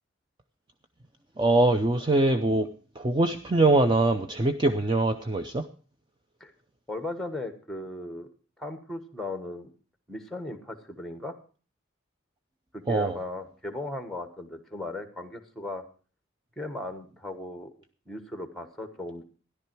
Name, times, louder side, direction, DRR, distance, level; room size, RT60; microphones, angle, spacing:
voice 1, 1.4-2.7 2.9-5.7 12.9-13.2, right 2 dB, 20° right, 7 dB, 0.5 m, -23 dB
voice 2, 6.9-8.3 8.6-9.7 10.1-11.3 12.7-15.8 16.6-17.7 18.1-19.2, left 2 dB, ahead, 8 dB, 1.3 m, -37 dB
13.5 x 11.0 x 4.5 m, 0.39 s
head